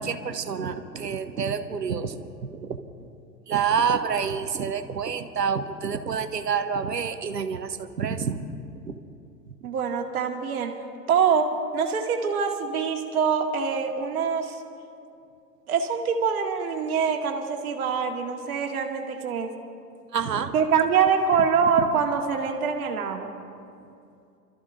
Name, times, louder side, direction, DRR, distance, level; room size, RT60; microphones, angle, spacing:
voice 1, 0.0-2.1 2.5-2.8 3.5-8.4 8.9-9.0 20.1-20.5, right 6 dB, 75° right, 9 dB, 1.1 m, -28 dB
voice 2, 9.6-10.8 11.1-14.6 15.7-19.6 20.5-23.3, right 6 dB, 60° right, 3 dB, 1.9 m, -24 dB
29.5 x 13.5 x 2.6 m, 2.5 s
figure-of-eight pair, 95°, 49 cm